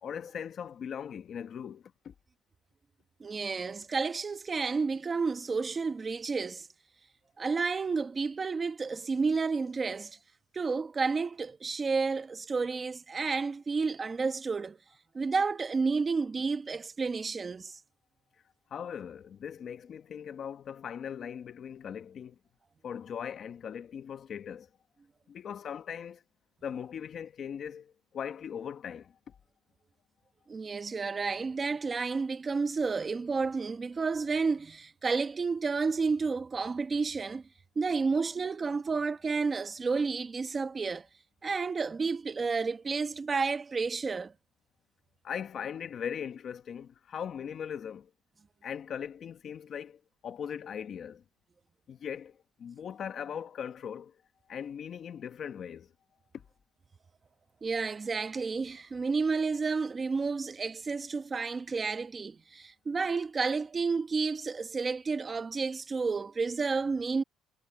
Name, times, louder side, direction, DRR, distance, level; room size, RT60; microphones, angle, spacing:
voice 1, 0.0-2.1 18.7-22.4 22.8-24.7 25.3-26.2 26.6-29.4 45.2-48.1 48.6-51.2 51.9-54.2 54.5-55.9 56.3-56.4, left 8 dB, 40° left, 1.1 m, -39 dB
voice 2, 3.2-6.7 7.4-10.2 10.5-14.8 15.1-17.8 30.5-37.4 37.7-41.1 41.4-44.3 57.6-67.2, right 4 dB, 20° right, 1.3 m, -31 dB
cardioid pair, 150°, 0 cm